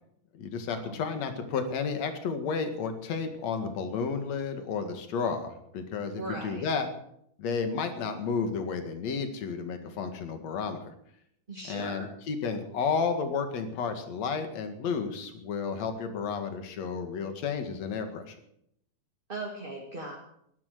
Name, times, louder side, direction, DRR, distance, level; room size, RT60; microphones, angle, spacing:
voice 1, 0.3-6.9 7.4-10.9 11.7-18.4, left 5 dB, 55° left, 7 dB, 3.0 m, -32 dB
voice 2, 6.2-6.7 11.5-12.1 19.3-20.2, right 2 dB, 20° right, -2 dB, 1.9 m, -38 dB
18.0 x 12.0 x 6.7 m, 0.73 s
omnidirectional pair, 3.8 m